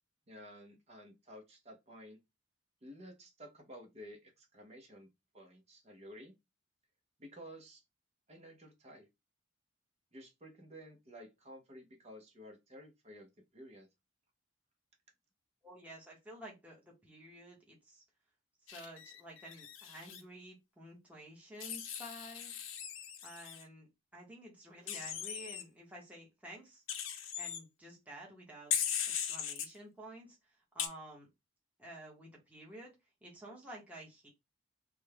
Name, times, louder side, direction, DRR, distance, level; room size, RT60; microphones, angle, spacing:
voice 1, 0.3-2.2 2.8-6.4 7.2-7.8 8.3-9.1 10.1-13.9, equal, 30° right, 0.7 m, -53 dB
voice 2, 15.6-18.0 18.7-22.6 23.2-26.8 27.4-28.7 29.1-31.3 31.8-32.9 33.2-34.3, right 1 dB, 5° right, 1.0 m, -51 dB
Wild animals, 18.7-20.2 21.6-23.6 24.9-25.6 26.9-27.6 28.7-29.7 30.8-30.9, left 8 dB, 80° left, 0.6 m, -39 dB
3.4 x 2.2 x 3.4 m
head